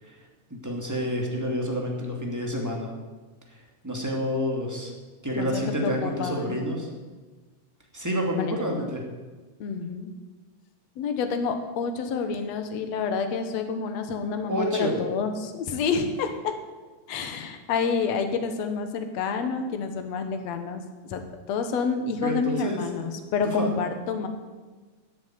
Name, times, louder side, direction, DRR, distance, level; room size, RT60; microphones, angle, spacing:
voice 1, 0.5-2.9 3.5-3.6 3.8-4.9 5.2-6.9 7.9-9.0 14.5-15.0 22.2-22.8 23.4-23.7, equal, 5° right, 0 dB, 2.2 m, -29 dB
voice 2, 5.4-6.6 8.4-8.7 9.6-10.1 11.0-16.5 17.1-20.8 21.1-24.3, left 5 dB, 65° left, 7 dB, 2.4 m, -28 dB
14.5 x 8.3 x 9.3 m, 1.3 s
omnidirectional pair, 3.3 m